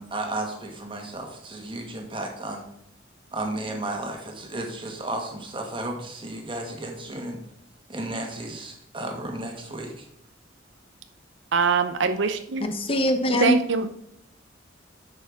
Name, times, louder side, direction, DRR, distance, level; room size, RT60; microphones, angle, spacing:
voice 1, 0.0-2.6 3.3-7.4 7.9-10.0, right 1 dB, 25° right, 2 dB, 1.7 m, -33 dB
voice 2, 11.5-12.7 13.4-13.9, right 5 dB, 65° right, 9 dB, 0.6 m, -23 dB
voice 3, 12.6-13.5, equal, 30° left, 7 dB, 0.8 m, -22 dB
10.0 x 6.8 x 3.6 m, 0.77 s
head